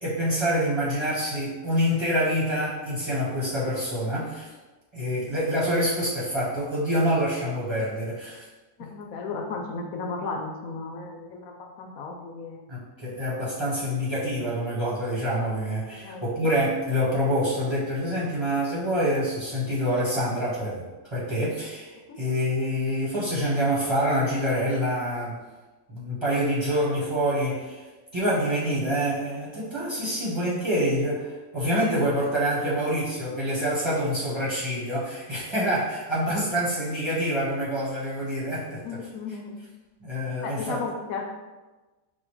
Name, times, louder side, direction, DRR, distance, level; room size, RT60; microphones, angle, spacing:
voice 1, 0.0-4.5 4.9-8.4 12.7-25.4 25.9-27.8 28.1-39.0 40.0-40.8, equal, 20° right, -8 dB, 1.0 m, -26 dB
voice 2, 8.8-12.6 16.0-16.2 22.1-22.2 38.8-39.6 40.4-41.3, left 4 dB, 80° left, 2 dB, 1.1 m, -34 dB
4.3 x 2.2 x 4.6 m, 1.2 s
omnidirectional pair, 1.5 m